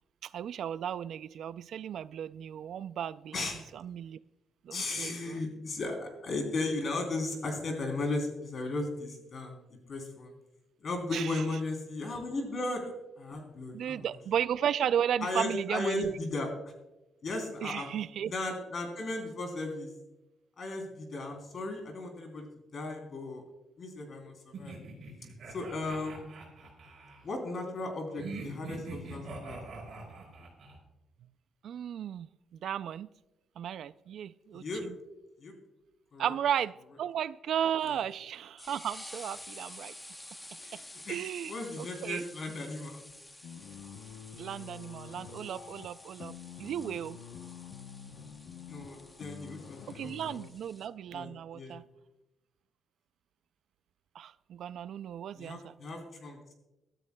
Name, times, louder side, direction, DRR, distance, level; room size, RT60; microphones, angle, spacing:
voice 1, 0.2-3.5 3.7-4.2 4.6-5.4 11.1-11.4 13.7-16.2 17.6-18.3 31.6-32.3 32.6-33.1 33.6-35.0 36.2-39.9 41.1-42.3 44.4-46.3 46.6-47.2 49.9-51.8 54.1-55.7, right 9 dB, 65° right, 15 dB, 0.3 m, -34 dB
voice 2, 3.3-3.7 4.7-9.6 9.9-10.3 10.8-14.1 15.2-16.5 17.2-17.9 18.2-19.9 20.6-22.5 22.7-23.4 23.8-24.8 25.5-26.2 27.2-29.6 34.5-34.8 35.4-35.5 36.1-36.3 37.9-38.0 40.6-41.2 41.5-43.0 48.7-50.4 51.1-51.3 51.5-51.8 55.3-56.5, left 2 dB, 40° left, 3 dB, 3.2 m, -36 dB
sound 1, 24.5-27.2 28.2-30.8, right 3 dB, 45° right, 5.4 m, -43 dB
sound 2, 37.8-50.9, left 1 dB, 10° left, 0.9 m, -50 dB
sound 3, 43.4-50.5, left 7 dB, 80° left, 0.8 m, -47 dB
23.0 x 13.0 x 2.2 m, 0.97 s
cardioid pair, 155°, 0 cm